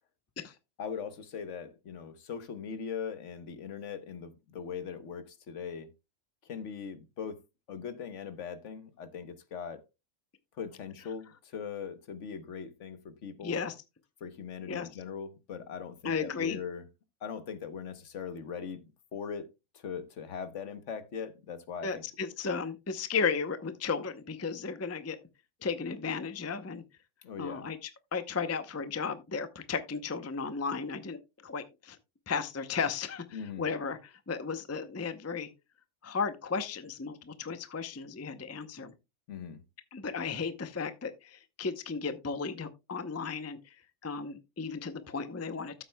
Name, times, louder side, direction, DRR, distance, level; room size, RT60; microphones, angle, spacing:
voice 1, 0.8-5.9 6.4-7.4 7.7-9.8 10.6-13.6 14.2-16.9 17.2-18.8 19.1-19.5 19.7-22.0 27.2-27.7 33.3-33.7 39.3-39.6, left 6 dB, 65° left, 1.3 m, -40 dB
voice 2, 13.4-13.7 14.7-14.9 16.0-16.6 21.8-25.2 25.6-26.8 27.4-27.8 28.1-31.2 31.4-32.0 32.3-35.5 36.0-38.9 39.9-43.6 44.0-45.8, left 5 dB, 20° left, 0.5 m, -34 dB
13.5 x 7.9 x 2.2 m
omnidirectional pair, 1.4 m